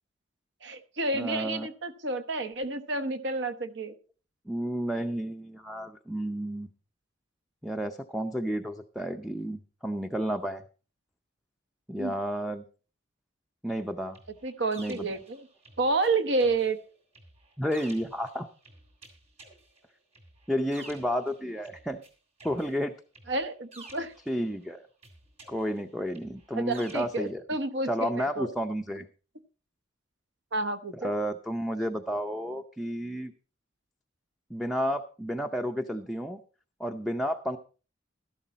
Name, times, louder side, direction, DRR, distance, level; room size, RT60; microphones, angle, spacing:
voice 1, 0.6-3.9 12.0-12.1 14.4-15.5 15.8-16.8 23.3-24.1 26.5-28.5 30.5-31.1, right 3 dB, 60° right, 10 dB, 1.1 m, -30 dB
voice 2, 1.1-1.7 4.5-6.7 7.6-10.6 11.9-12.6 13.6-14.2 14.8-15.1 17.6-18.5 20.5-22.0 22.4-22.9 24.3-24.8 25.5-27.4 27.8-29.0 30.9-33.3 34.5-36.4 36.8-37.6, equal, ahead, 6 dB, 0.5 m, -31 dB
sound 1, 14.1-16.1 16.4-22.1 22.4-24.6 25.0-27.3, right 2 dB, 30° right, 3.2 m, -52 dB
13.0 x 11.5 x 4.1 m, 0.36 s
head